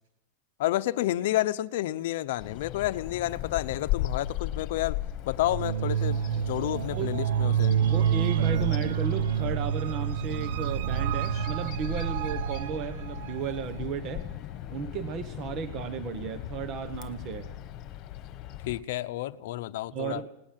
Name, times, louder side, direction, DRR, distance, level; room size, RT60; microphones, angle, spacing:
voice 1, 0.6-5.0 5.3-7.7 18.7-20.2, left 15 dB, 60° left, 0.8 m, -30 dB
Bird vocalization bird call bird song, 2.4-18.8, left 13 dB, 30° left, 1.5 m, -37 dB
sound 1, 5.4-13.7, right 9 dB, 65° right, 0.7 m, -28 dB
voice 2, 7.8-14.3 14.7-17.5 19.9-20.3, right 7 dB, 30° right, 1.0 m, -34 dB
19.5 x 18.5 x 7.5 m
supercardioid pair, 170°, 0 cm